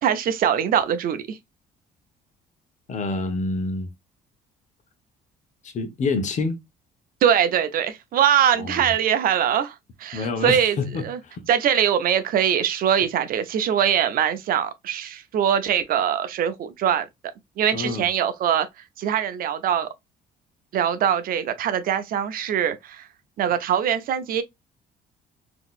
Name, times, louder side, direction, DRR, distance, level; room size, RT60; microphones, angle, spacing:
voice 1, 0.0-1.4 7.2-9.7 10.0-10.8 11.0-11.2 11.5-17.0 17.6-18.7 19.0-19.9 20.7-23.0 23.4-24.4, right 9 dB, 60° right, 0.6 m, -22 dB
voice 2, 2.9-3.9 5.6-6.6 8.6-8.9 10.1-11.4 17.7-18.1, left 3 dB, 45° left, 0.9 m, -27 dB
3.8 x 2.9 x 2.4 m
cardioid pair, 110°, 17 cm